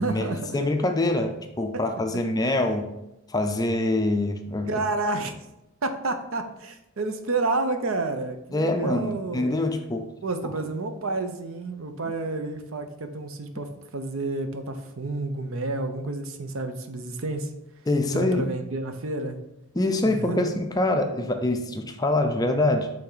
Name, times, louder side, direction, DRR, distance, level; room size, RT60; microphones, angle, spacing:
voice 1, 0.0-0.7 1.7-1.8 2.4-2.8 4.7-5.4 5.8-9.6 10.2-17.5 18.1-19.4 20.0-20.6, right 3 dB, 70° right, 7 dB, 0.7 m, -30 dB
voice 2, 0.5-2.9 3.3-4.8 8.5-10.1 12.0-12.1 17.9-18.5 19.7-22.9, left 2 dB, 15° left, 6 dB, 0.4 m, -25 dB
8.5 x 3.4 x 4.0 m, 0.89 s
head